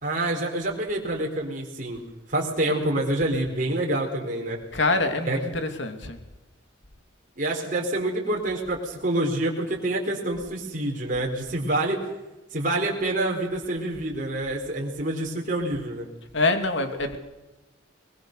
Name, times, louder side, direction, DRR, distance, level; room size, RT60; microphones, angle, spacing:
voice 1, 0.0-2.0 2.3-4.6 5.3-5.4 7.4-12.0 12.5-16.1, right 1 dB, 40° right, -1 dB, 4.0 m, -27 dB
voice 2, 4.7-6.2 16.3-17.2, left 2 dB, 65° left, 6 dB, 2.7 m, -25 dB
22.5 x 22.0 x 6.6 m, 1.1 s
head